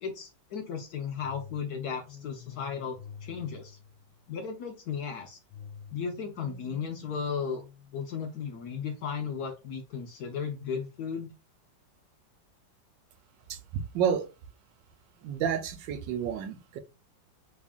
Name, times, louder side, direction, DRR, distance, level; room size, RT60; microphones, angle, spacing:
voice 1, 0.0-3.8 4.3-5.4 5.9-7.6 7.9-11.3, left 6 dB, 70° left, 1.0 m, -35 dB
sound 1, 1.2-4.3 5.5-8.4, left 8 dB, 85° left, 1.3 m, -48 dB
voice 2, 13.5-14.3 15.2-16.8, right 8 dB, 75° right, 1.3 m, -30 dB
3.6 x 3.3 x 2.4 m
omnidirectional pair, 2.1 m